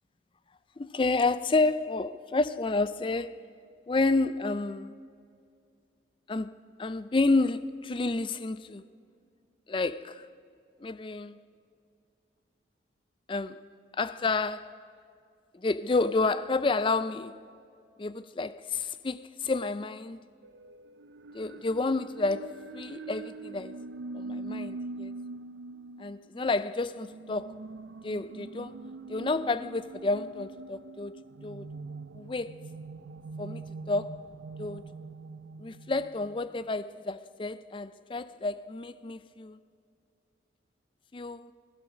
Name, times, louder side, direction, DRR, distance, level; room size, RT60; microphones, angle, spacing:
voice 1, 0.8-3.4 3.9-4.9 6.3-8.8 9.7-10.3 10.8-11.4 13.3-13.6 13.9-14.8 15.5-17.4 18.0-20.3 21.3-23.8 24.1-25.1 26.0-27.6 28.0-28.8 29.1-31.2 31.4-31.7 32.1-32.6 33.4-34.3 34.6-34.8 35.6-39.6 41.1-41.5, left 3 dB, 25° left, 0.4 m, -30 dB
sound 1, 20.4-36.7, right 3 dB, 70° right, 0.5 m, -43 dB
16.0 x 14.5 x 6.2 m
head